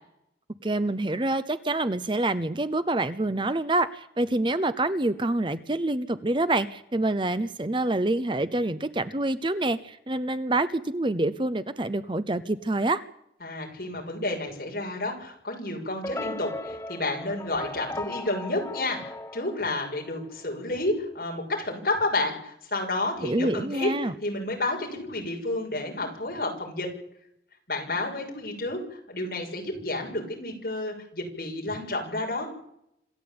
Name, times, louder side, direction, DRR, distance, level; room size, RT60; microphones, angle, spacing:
voice 1, 0.6-13.0 23.2-24.1, right 2 dB, 25° right, 13 dB, 0.8 m, -26 dB
voice 2, 13.4-23.9 24.2-26.9 27.7-28.8 29.1-32.5, left 2 dB, 55° left, 1 dB, 6.6 m, -30 dB
sound 1, 16.0-20.4, left 2 dB, 15° left, 0.9 m, -37 dB
26.5 x 13.5 x 8.7 m, 0.76 s
head